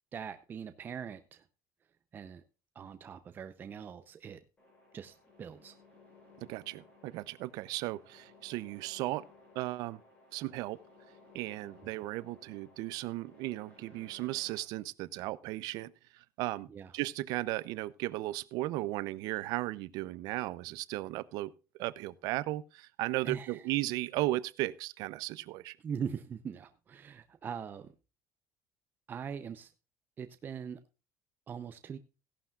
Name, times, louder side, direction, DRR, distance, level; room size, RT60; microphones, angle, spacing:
voice 1, 0.1-1.5 2.1-2.4 2.7-4.4 4.9-5.8 11.8-11.9 16.7-16.9 23.2-23.7 25.8-27.9 29.1-29.7 30.2-30.8 31.5-32.0, right 7 dB, 30° right, 0.7 m, -41 dB
sound 1, 4.6-14.6, left 3 dB, 20° left, 6.1 m, -59 dB
voice 2, 6.5-9.2 9.5-10.0 10.3-10.8 11.3-15.9 16.4-16.7 16.9-21.5 21.8-25.8, right 18 dB, 75° right, 0.6 m, -35 dB
16.0 x 11.5 x 2.4 m
cardioid pair, 155°, 7 cm